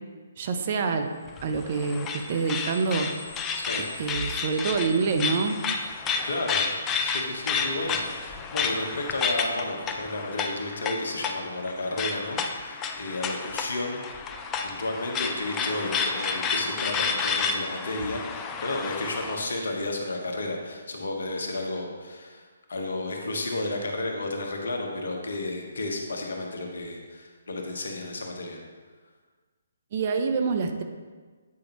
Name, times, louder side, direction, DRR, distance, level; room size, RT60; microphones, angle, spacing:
voice 1, 0.4-1.1 1.4-3.1 4.0-5.6 29.9-30.8, right 5 dB, 45° right, 6 dB, 0.5 m, -26 dB
sound 1, 1.3-19.5, left 5 dB, 20° left, 0.4 m, -31 dB
voice 2, 3.6-3.9 6.2-6.7 7.0-14.0 14.6-28.6, left 2 dB, 70° left, 1 dB, 1.1 m, -32 dB
8.3 x 5.0 x 3.0 m, 1.4 s
figure-of-eight pair, 140°, 0 cm